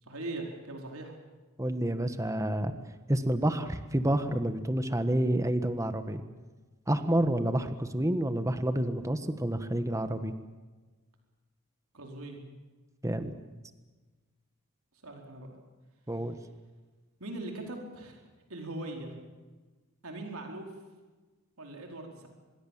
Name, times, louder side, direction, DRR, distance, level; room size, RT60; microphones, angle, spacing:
voice 1, 0.1-1.1 11.9-12.4 15.0-15.6 17.2-18.2 18.5-19.2 20.0-20.7 21.6-22.3, right 2 dB, 75° right, 2 dB, 4.7 m, -40 dB
voice 2, 1.6-2.7 3.1-6.2 6.9-10.3 13.0-13.3 16.1-16.4, right 1 dB, 15° right, 9 dB, 1.4 m, -29 dB
25.5 x 21.5 x 7.5 m, 1.3 s
head